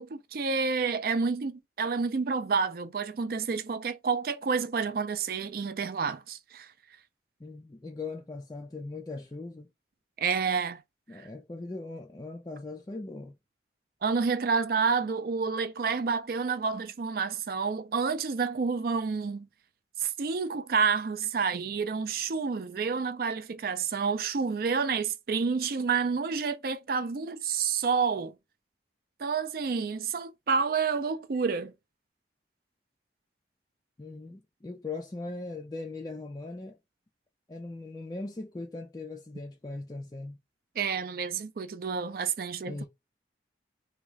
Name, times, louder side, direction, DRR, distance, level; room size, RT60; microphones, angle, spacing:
voice 1, 0.0-6.7 10.2-10.8 11.2-11.3 14.0-19.5 20.0-28.3 29.2-31.7 40.8-42.8, right 5 dB, 50° right, 0.4 m, -29 dB
voice 2, 7.4-9.7 11.1-13.4 34.0-36.8 37.5-40.4 42.6-42.8, left 3 dB, 20° left, 0.3 m, -39 dB
3.6 x 2.3 x 3.1 m
head